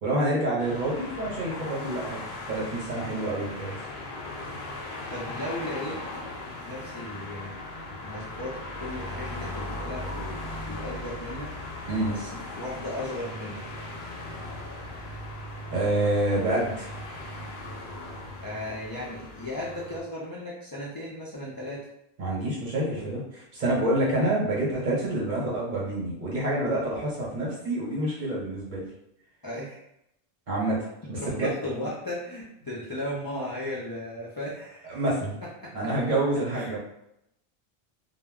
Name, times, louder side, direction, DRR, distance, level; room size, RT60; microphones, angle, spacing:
voice 1, 0.0-2.2 2.5-3.7 11.9-12.1 15.7-17.0 22.2-28.8 30.5-31.5 31.7-31.9 34.9-35.3 35.7-36.8, right 1 dB, 50° right, -5 dB, 1.0 m, -27 dB
sound 1, 0.6-20.0, left 2 dB, 65° left, 0.7 m, -38 dB
voice 2, 5.1-6.0 6.6-7.6 8.0-11.5 12.0-12.3 12.6-13.7 18.4-21.9 29.4-29.8 31.2-35.0 35.6-35.9 36.5-36.8, left 1 dB, 35° left, -6 dB, 0.3 m, -36 dB
2.1 x 2.1 x 3.5 m, 0.80 s
omnidirectional pair, 1.0 m